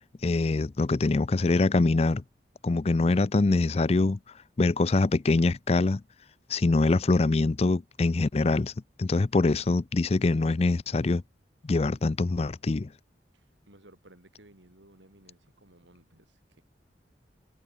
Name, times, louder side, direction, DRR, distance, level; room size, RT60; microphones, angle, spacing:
voice 1, 0.2-2.2 2.6-4.2 4.6-6.0 6.5-8.7 9.0-11.2 11.6-12.9, left 3 dB, 35° left, 0.4 m, -24 dB
voice 2, 13.3-16.6, right 1 dB, 85° right, 5.8 m, -57 dB
head